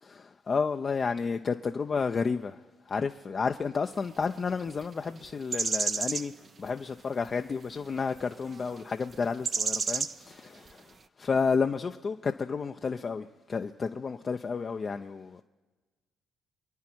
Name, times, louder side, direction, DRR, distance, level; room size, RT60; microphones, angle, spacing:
voice 1, 0.2-2.6 2.9-6.3 6.6-15.4, left 5 dB, 40° left, 0.5 m, -31 dB
sound 1, 4.6-4.8 5.5-6.3 7.2-7.3 8.2-8.3 8.5-8.8 9.4-10.1 10.7-10.8, right 5 dB, 40° right, 0.5 m, -30 dB
26.0 x 9.4 x 4.6 m
hypercardioid pair, 55°, 0 cm